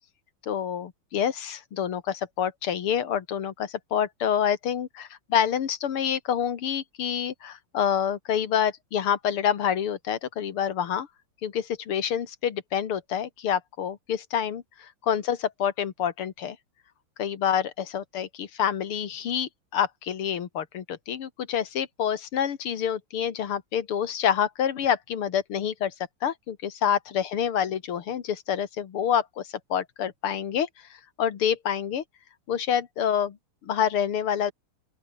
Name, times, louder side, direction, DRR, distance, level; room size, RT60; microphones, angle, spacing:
voice 1, 0.5-11.1 11.4-16.6 17.2-25.9 26.2-30.7 31.2-32.0 32.5-33.4 33.6-34.5, left 9 dB, 90° left, 2.6 m, -27 dB
open air
omnidirectional pair, 2.3 m